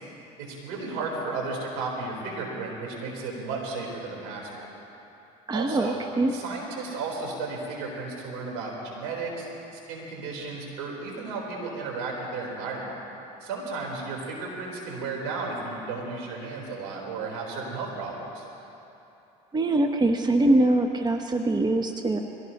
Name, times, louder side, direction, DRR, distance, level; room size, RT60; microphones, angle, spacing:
voice 1, 0.4-4.7 5.5-6.0 6.3-9.5 9.9-12.9 13.4-18.4, right 3 dB, 75° right, -2 dB, 4.1 m, -34 dB
voice 2, 5.5-6.3 19.5-22.2, right 2 dB, 20° right, 5 dB, 1.0 m, -23 dB
22.0 x 17.0 x 3.0 m, 2.9 s
hypercardioid pair, 75°, 19 cm